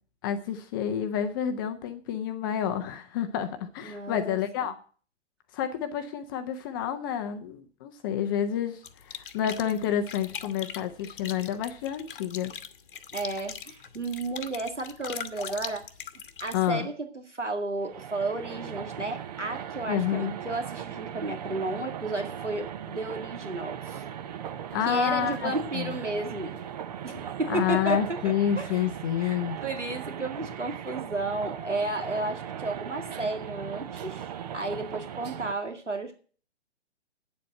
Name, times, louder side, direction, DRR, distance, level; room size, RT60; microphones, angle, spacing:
voice 1, 0.2-4.7 5.5-12.5 16.5-16.9 19.9-20.3 24.7-25.9 27.5-29.6, left 9 dB, 20° left, 9 dB, 0.6 m, -29 dB
voice 2, 3.8-4.7 13.1-15.8 16.4-24.0 24.9-26.6 27.0-28.9 29.2-36.1, right 2 dB, 85° right, 4 dB, 2.1 m, -33 dB
sound 1, 8.8-16.7, left 8 dB, 45° left, 1.1 m, -41 dB
sound 2, 17.8-35.5, right 9 dB, 35° right, 0.9 m, -38 dB
9.3 x 7.6 x 9.0 m, 0.43 s
figure-of-eight pair, 125°, 35 cm